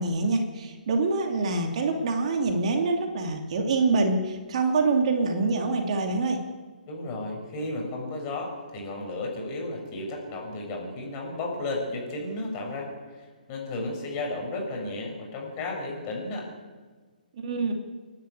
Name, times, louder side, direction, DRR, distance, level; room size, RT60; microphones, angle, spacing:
voice 1, 0.0-6.4 17.4-17.7, right 3 dB, 45° right, 3 dB, 2.5 m, -25 dB
voice 2, 6.9-12.9 13.2-16.5, left 2 dB, 25° left, 1 dB, 6.7 m, -33 dB
29.5 x 10.5 x 8.5 m, 1.4 s
figure-of-eight pair, 135°, 5 cm